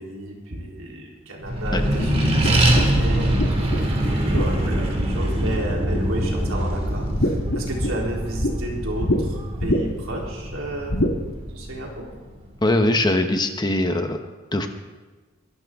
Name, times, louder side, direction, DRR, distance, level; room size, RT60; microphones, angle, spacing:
voice 1, 0.0-12.1, right 1 dB, 75° right, -2 dB, 3.6 m, -33 dB
Accelerating revving vroom, 1.4-12.4, right 1 dB, 30° right, 2.4 m, -24 dB
sound 1, 2.4-5.6 5.9-6.5 6.8-8.5 9.0-9.2 9.6-10.1 10.9-11.2, left 1 dB, 65° left, 1.7 m, -25 dB
voice 2, 12.6-14.7, left 1 dB, 20° left, 6 dB, 1.0 m, -22 dB
23.5 x 12.5 x 3.7 m, 1.3 s
head